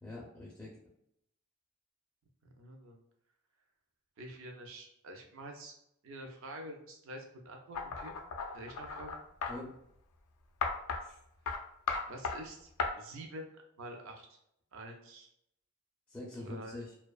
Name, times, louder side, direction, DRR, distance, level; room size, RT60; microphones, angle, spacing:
voice 1, 0.0-0.8 9.5-9.7 11.0-11.2 16.1-16.9, left 2 dB, 10° left, -6 dB, 0.4 m, -45 dB
voice 2, 2.4-3.0 4.2-5.7 6.0-8.1 8.5-9.2 12.1-12.7 13.0-14.4 14.7-15.3 16.4-16.8, right 1 dB, 60° right, 3 dB, 0.4 m, -47 dB
sound 1, 7.7-9.6 10.6-11.0 11.5-11.6 11.9-12.4 12.8-12.9, left 4 dB, 80° left, 0.3 m, -35 dB
2.4 x 2.2 x 2.3 m, 0.76 s
head